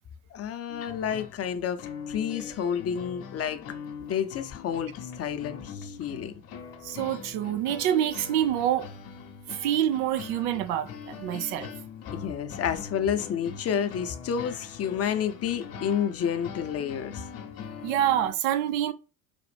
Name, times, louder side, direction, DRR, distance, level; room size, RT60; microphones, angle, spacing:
voice 1, 0.3-3.6 4.0-6.3 12.1-17.2, left 8 dB, 35° left, 0.7 m, -30 dB
sound 1, 0.7-18.3, left 6 dB, 60° left, 0.9 m, -42 dB
voice 2, 6.8-8.9 9.5-11.7 17.8-18.9, right 11 dB, 70° right, 0.6 m, -26 dB
5.0 x 2.5 x 3.4 m
hypercardioid pair, 65°, 43 cm